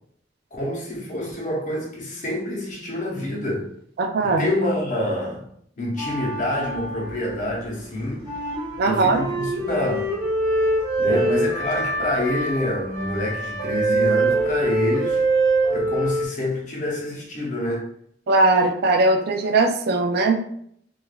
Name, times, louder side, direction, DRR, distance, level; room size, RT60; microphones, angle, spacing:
voice 1, 0.5-3.7 4.2-5.4 5.8-8.3 8.9-10.1 11.0-15.2 15.7-17.9, left 1 dB, 45° left, 0.7 m, -27 dB
voice 2, 4.0-4.4 8.8-9.2 18.3-20.4, right 3 dB, 55° right, 0.3 m, -19 dB
sound 1, 6.0-7.6 8.2-16.3, right 2 dB, 25° right, 1.0 m, -24 dB
3.1 x 2.3 x 2.3 m
head